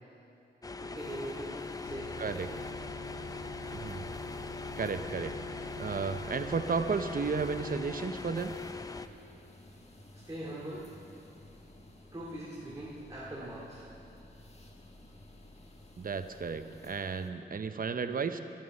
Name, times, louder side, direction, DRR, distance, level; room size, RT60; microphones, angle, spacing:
sound 1, 0.6-9.1, left 4 dB, 20° left, 0.4 m, -41 dB
voice 1, 0.8-2.3 10.3-10.8 12.1-13.8, right 1 dB, 20° right, -8 dB, 2.3 m, -41 dB
sound 2, 1.0-17.3, left 1 dB, 35° left, 1.3 m, -55 dB
sound 3, 1.8-7.7, right 2 dB, 80° left, 1.2 m, -47 dB
voice 2, 3.7-4.0 4.8-5.3 5.8-8.5 16.0-18.4, right 5 dB, 50° right, 9 dB, 0.7 m, -33 dB
13.5 x 11.5 x 5.3 m, 2.7 s
wide cardioid pair, 105°, 18 cm